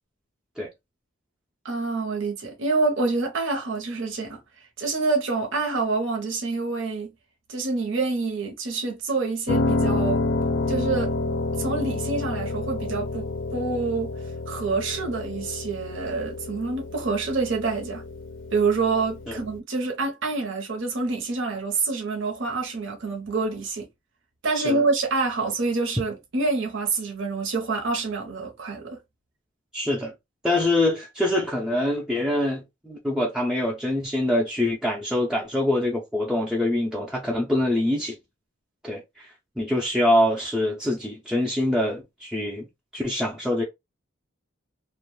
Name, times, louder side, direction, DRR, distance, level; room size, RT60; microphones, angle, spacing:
voice 1, 1.6-4.4 4.8-7.1 7.5-10.2 10.7-11.1 11.6-14.1 14.5-18.0 18.5-23.9 24.4-29.0, right 3 dB, 65° right, 0.8 m, -27 dB
Piano, 9.5-19.6, left 2 dB, 70° left, 0.5 m, -29 dB
voice 2, 29.7-30.1 30.4-38.2 38.8-39.3 39.6-42.7 42.9-43.6, left 1 dB, 5° right, 0.4 m, -24 dB
2.5 x 2.2 x 3.0 m
head